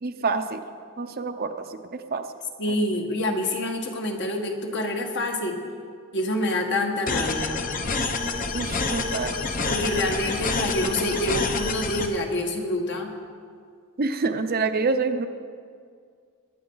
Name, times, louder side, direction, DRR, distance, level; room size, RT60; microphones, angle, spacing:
voice 1, 0.0-0.6 1.0-2.2 8.5-9.4 14.0-15.3, right 4 dB, 45° right, 8 dB, 0.7 m, -27 dB
voice 2, 2.6-5.6 6.1-7.6 9.6-13.1, left 1 dB, 55° left, 2 dB, 1.6 m, -27 dB
sound 1, 7.1-12.1, left 3 dB, 40° left, 0.9 m, -27 dB
21.0 x 10.0 x 3.9 m, 2.1 s
head